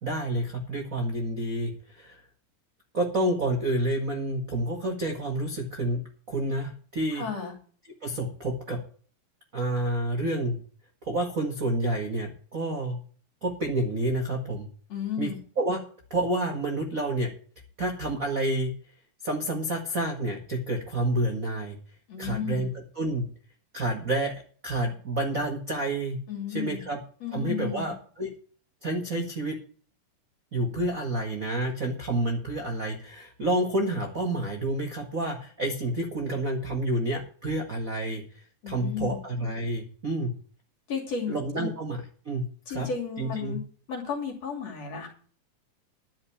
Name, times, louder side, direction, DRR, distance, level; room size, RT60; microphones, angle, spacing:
voice 1, 0.0-2.2 2.9-6.0 6.3-7.2 8.0-8.8 9.5-10.6 11.0-13.0 13.4-14.7 15.2-15.8 16.1-17.3 17.8-18.7 19.2-21.8 22.2-23.3 23.7-24.3 24.6-26.2 26.5-27.0 27.3-28.3 28.8-29.6 30.5-38.2 38.7-40.3 41.3-42.4 42.7-42.9 43.2-43.6, right 1 dB, 35° right, 2 dB, 1.4 m, -29 dB
voice 2, 7.1-7.5 14.9-15.4 22.1-22.7 26.3-26.8 27.2-27.9 38.6-39.2 40.9-41.7 42.7-43.6 43.9-45.1, left 6 dB, 50° left, 2 dB, 3.8 m, -33 dB
11.5 x 5.6 x 8.3 m, 0.44 s
omnidirectional pair, 3.9 m